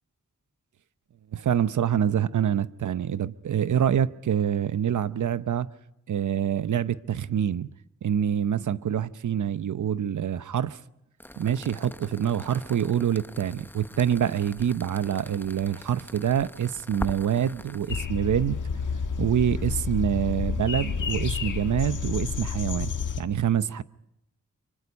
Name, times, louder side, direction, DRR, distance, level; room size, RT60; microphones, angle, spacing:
voice 1, 1.3-5.7 6.1-7.7 8.0-10.8 11.4-18.6 19.2-23.8, right 9 dB, 75° right, 0.8 m, -26 dB
sound 1, 11.2-18.1, left 1 dB, 5° left, 0.9 m, -42 dB
sound 2, 17.9-23.2, left 6 dB, 75° left, 1.6 m, -30 dB
25.5 x 24.5 x 5.3 m
cardioid pair, 50°, 31 cm